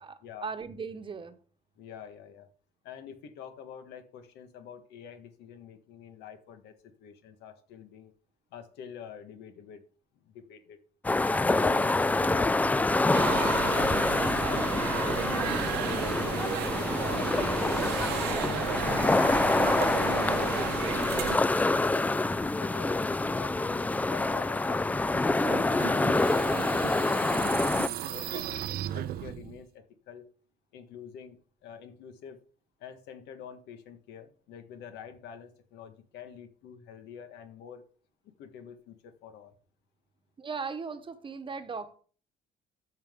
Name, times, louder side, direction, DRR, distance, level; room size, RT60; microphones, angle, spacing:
voice 1, 0.0-1.4 40.4-42.0, right 5 dB, 30° right, 9 dB, 1.1 m, -38 dB
voice 2, 1.8-2.5 2.8-8.1 8.5-9.8 10.1-10.8 11.5-18.9 19.4-22.2 22.6-26.5 26.9-30.3 30.7-32.4 32.8-37.8 38.2-39.5, left 7 dB, 85° left, 8 dB, 1.6 m, -47 dB
sound 1, 11.0-27.9, left 2 dB, 10° left, 0.3 m, -26 dB
sound 2, 13.1-21.4, right 10 dB, 90° right, 1.2 m, -33 dB
sound 3, 25.4-29.6, right 12 dB, 65° right, 0.7 m, -36 dB
13.5 x 5.7 x 3.7 m, 0.43 s
cardioid pair, 110°, 17 cm